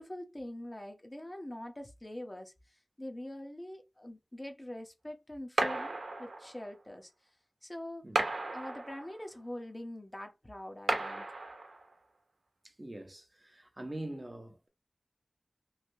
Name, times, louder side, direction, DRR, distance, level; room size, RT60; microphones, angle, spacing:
voice 1, 0.0-5.9 6.2-7.1 7.6-8.1 8.5-11.3, left 1 dB, 25° left, 0.7 m, -44 dB
sound 1, 5.6-6.7 8.1-9.3 10.9-11.9, right 2 dB, 90° right, 0.8 m, -34 dB
voice 2, 12.8-14.7, right 1 dB, 30° right, 0.7 m, -43 dB
3.2 x 2.7 x 2.6 m
wide cardioid pair, 65°, 0 cm